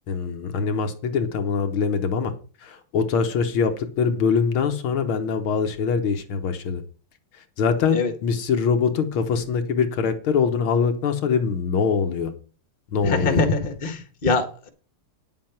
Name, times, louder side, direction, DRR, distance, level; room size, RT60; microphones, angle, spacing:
voice 1, 0.1-2.3 2.6-6.8 7.6-12.3 12.9-13.5, left 6 dB, 75° left, 7 dB, 1.9 m, -23 dB
voice 2, 13.0-14.7, left 3 dB, 25° left, 7 dB, 1.6 m, -23 dB
9.9 x 7.7 x 5.8 m, 0.38 s
omnidirectional pair, 2.4 m